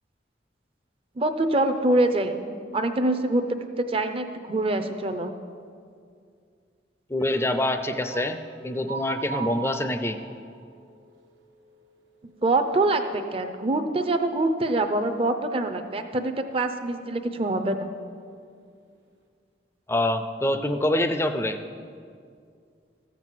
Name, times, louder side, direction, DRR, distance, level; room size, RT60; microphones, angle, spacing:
voice 1, 1.2-2.4 2.7-5.3 12.2-17.9, right 2 dB, 30° right, 7 dB, 0.6 m, -25 dB
voice 2, 7.1-8.4 8.6-10.2 19.9-21.6, left 1 dB, 15° left, 8 dB, 0.5 m, -25 dB
sound 1, 7.2-13.0 13.2-13.6 14.0-14.2, right 7 dB, 85° right, 1.3 m, -41 dB
14.0 x 6.1 x 7.5 m, 2.3 s
head